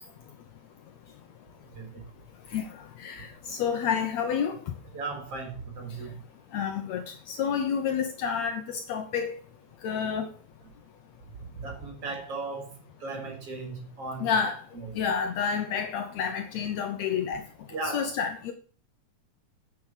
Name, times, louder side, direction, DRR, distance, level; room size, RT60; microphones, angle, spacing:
voice 1, 2.5-4.8 5.9-6.1 6.5-9.4 9.8-10.3 14.2-17.5 17.8-18.5, left 7 dB, 70° left, 2.1 m, -30 dB
voice 2, 4.9-6.1 11.5-14.3 14.7-14.9 17.7-18.1, right 3 dB, 50° right, 5.0 m, -37 dB
9.3 x 7.5 x 6.5 m
omnidirectional pair, 3.4 m